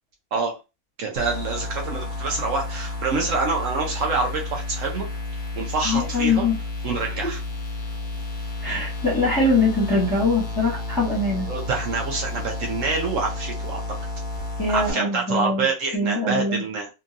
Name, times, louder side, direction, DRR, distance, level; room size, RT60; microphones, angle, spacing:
voice 1, 1.0-5.1 5.6-6.5 6.8-7.4 11.5-13.8 14.7-16.9, right 4 dB, 65° right, 1 dB, 1.0 m, -26 dB
sound 1, 1.2-14.9, left 3 dB, 50° left, 0.9 m, -31 dB
voice 2, 5.8-6.5 7.0-7.2 8.6-11.5 14.6-15.7 15.9-16.6, left 3 dB, 15° left, -6 dB, 1.0 m, -22 dB
2.9 x 2.6 x 2.5 m, 0.28 s
omnidirectional pair, 1.5 m